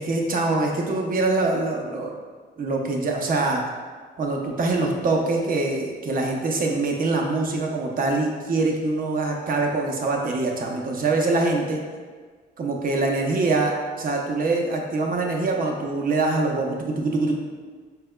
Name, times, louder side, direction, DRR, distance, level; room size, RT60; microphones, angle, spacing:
voice 1, 0.0-2.1 2.6-3.6 4.2-11.8 12.6-17.3, right 3 dB, 45° right, 0 dB, 0.7 m, -24 dB
4.6 x 3.4 x 2.2 m, 1.5 s
cardioid pair, 90°, 20 cm